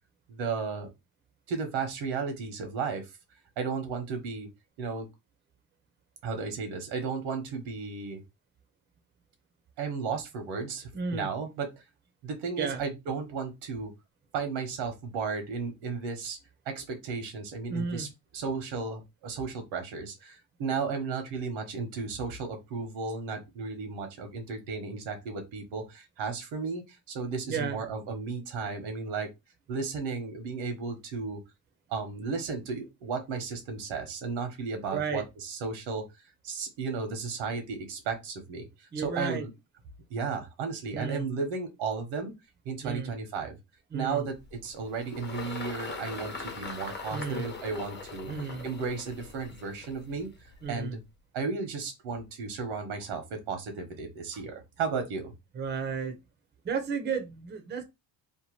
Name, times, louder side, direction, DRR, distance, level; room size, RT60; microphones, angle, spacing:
voice 1, 0.3-0.9 1.5-3.0 3.6-4.5 4.8-5.1 6.2-8.2 9.8-11.7 12.2-13.9 14.3-16.4 16.7-18.1 18.3-29.3 29.7-31.4 31.9-36.0 36.4-39.5 40.1-42.3 42.6-43.6 43.9-48.3 48.6-50.3 50.7-51.0 51.3-55.3, right 5 dB, 80° right, 1.1 m, -34 dB
voice 2, 10.9-11.3 12.6-12.8 17.7-18.1 27.5-27.8 34.9-35.2 38.9-39.5 40.9-41.3 42.8-43.1 43.9-44.3 47.1-47.5 48.3-48.6 50.6-50.9 55.6-56.2 56.6-57.8, right 5 dB, 25° right, 0.6 m, -33 dB
Engine, 44.3-50.9, left 4 dB, 25° left, 0.7 m, -42 dB
2.8 x 2.2 x 3.1 m
cardioid pair, 115°, 47 cm